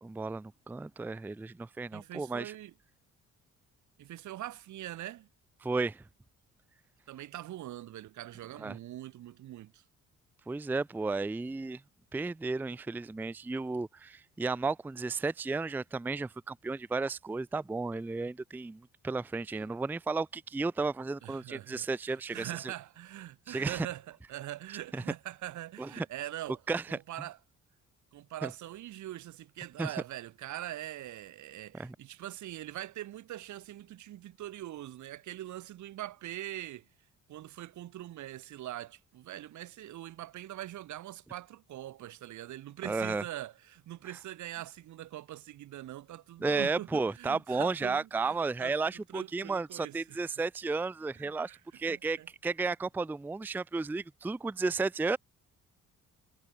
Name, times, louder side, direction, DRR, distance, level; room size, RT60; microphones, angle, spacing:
voice 1, 0.0-2.5 5.6-6.0 8.6-8.8 10.5-11.8 12.1-22.5 23.5-23.9 24.9-25.0 25.8-25.9 26.7-27.0 28.4-28.5 29.8-29.9 31.7-32.0 42.8-43.2 46.4-55.2, right 3 dB, 5° right, 0.4 m, -33 dB
voice 2, 1.9-2.7 4.0-5.3 7.1-9.8 19.5-19.7 21.2-26.6 26.9-27.4 28.1-36.9 37.3-50.3 51.2-51.6 51.9-52.3, right 13 dB, 75° right, 1.2 m, -43 dB
cardioid pair, 90°, 30 cm